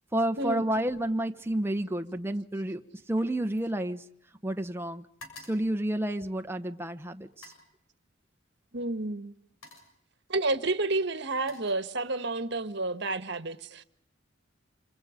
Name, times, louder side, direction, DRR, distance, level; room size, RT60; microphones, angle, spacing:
voice 1, 0.1-2.8 3.1-4.0 4.4-5.1 5.5-7.5, right 1 dB, 10° right, 1.1 m, -30 dB
sound 1, 0.7-1.1 1.4-4.5 4.8-6.7 7.3-7.8 8.8-9.0 9.4-10.1 10.9-12.3 12.7-13.1, left 2 dB, 85° left, 6.8 m, -54 dB
voice 2, 8.7-9.3 10.3-13.8, right 2 dB, 55° right, 1.5 m, -30 dB
28.0 x 26.5 x 5.2 m
head